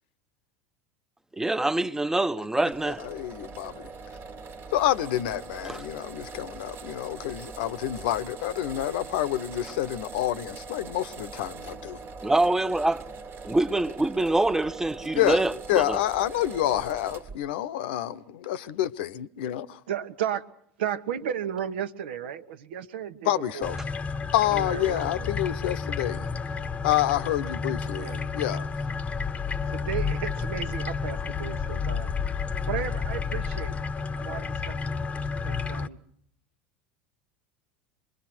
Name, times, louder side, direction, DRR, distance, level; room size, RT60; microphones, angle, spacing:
voice 1, 1.3-3.0 5.6-5.8 12.2-13.0 13.4-16.0, right 2 dB, 10° right, 0.9 m, -25 dB
sound 1, 2.7-17.4, right 4 dB, 40° right, 1.6 m, -42 dB
voice 2, 2.8-3.9 4.7-12.0 15.1-15.4 15.7-19.8 23.2-23.8 24.3-26.2 26.8-28.7, left 13 dB, 65° left, 0.9 m, -28 dB
voice 3, 19.9-20.4 20.8-23.7 24.5-25.4 27.9-28.2 29.7-32.1 32.7-33.7 34.2-35.1 35.4-36.0, right 9 dB, 70° right, 1.3 m, -34 dB
sound 2, 23.6-35.9, left 5 dB, 20° left, 0.9 m, -31 dB
26.0 x 21.5 x 6.1 m
hypercardioid pair, 75°, 6 cm